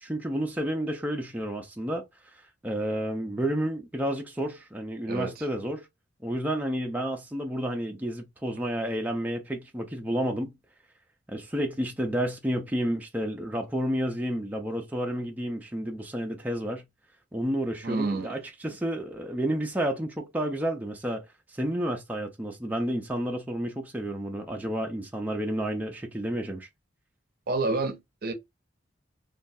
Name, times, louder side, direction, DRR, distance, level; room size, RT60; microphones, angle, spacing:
voice 1, 0.0-5.9 6.2-10.6 11.3-16.9 17.3-26.7, right 1 dB, 10° right, 0.4 m, -31 dB
voice 2, 17.8-18.3 27.5-28.3, right 3 dB, 55° right, 0.6 m, -29 dB
3.1 x 2.3 x 2.6 m
head